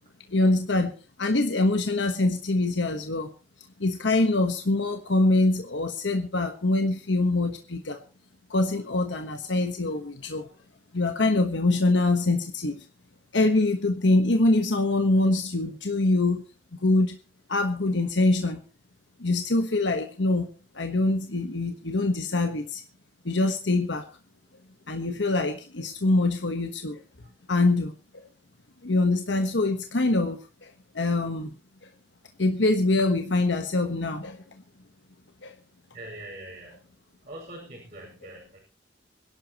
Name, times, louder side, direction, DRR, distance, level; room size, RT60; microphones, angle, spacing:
voice 1, 0.3-0.9 1.2-3.3 3.8-8.0 8.5-10.5 10.9-12.8 13.3-16.4 16.8-17.2 17.5-18.6 19.2-20.5 20.7-22.8 23.2-24.1 24.9-27.0 27.5-28.2 28.8-30.4 30.9-31.5 32.4-34.4 35.4-35.5, left 2 dB, 75° left, 5 dB, 1.2 m, -24 dB
voice 2, 35.9-36.8 37.2-38.6, right 1 dB, 35° right, -4 dB, 5.6 m, -42 dB
25.0 x 11.5 x 3.0 m, 0.35 s
head